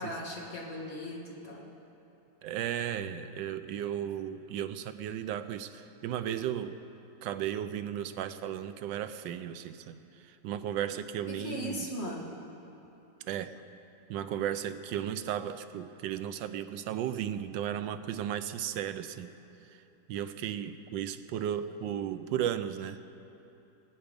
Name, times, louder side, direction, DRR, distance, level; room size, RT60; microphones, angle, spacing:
voice 1, 0.0-1.6 11.3-12.4, left 1 dB, 35° left, -2 dB, 2.1 m, -38 dB
voice 2, 2.4-6.8 7.2-11.9 13.2-13.6 14.1-19.3 19.7-19.8 20.1-23.0, right 10 dB, 85° right, 11 dB, 1.3 m, -35 dB
20.5 x 9.0 x 5.2 m, 2.9 s
omnidirectional pair, 1.9 m